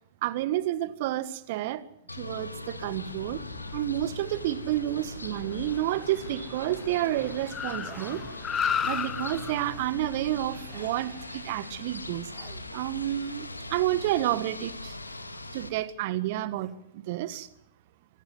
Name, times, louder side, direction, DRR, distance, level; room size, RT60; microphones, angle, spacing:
voice 1, 0.2-1.8 2.2-3.4 3.7-8.2 8.8-12.3 12.7-14.9 15.5-17.5, right 14 dB, 50° right, 1.6 m, -30 dB
sound 1, 2.1-15.7, left 2 dB, 85° left, 2.0 m, -41 dB
Car, 2.7-12.2, left 7 dB, 20° left, 1.1 m, -37 dB
sound 2, 7.7-8.5 8.8-9.2 9.5-10.0 10.6-11.0 12.2-12.7 15.0-15.9 16.5-16.8, right 8 dB, 25° right, 3.1 m, -53 dB
25.5 x 15.0 x 7.9 m
figure-of-eight pair, 105°, 0 cm